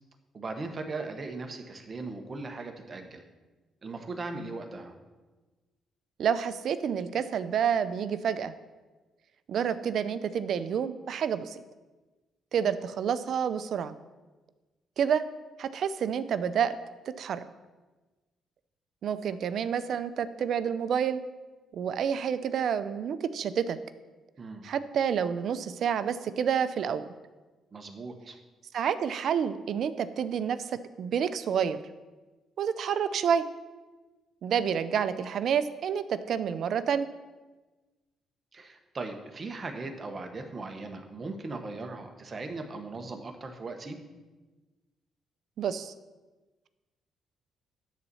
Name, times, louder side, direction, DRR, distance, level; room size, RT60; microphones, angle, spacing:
voice 1, 0.3-3.2 3.8-4.9 24.4-24.6 27.7-28.4 38.5-44.0, right 3 dB, 35° right, 5 dB, 1.2 m, -38 dB
voice 2, 6.2-8.5 9.5-11.6 12.5-13.9 15.0-15.2 15.6-16.8 17.2-17.4 19.0-21.2 21.7-23.8 24.6-27.1 28.7-30.7 31.0-31.8 32.6-33.4 34.4-37.1 45.6-45.9, right 8 dB, 65° right, 13 dB, 0.5 m, -29 dB
10.5 x 4.1 x 7.0 m, 1.2 s
cardioid pair, 90°, 0 cm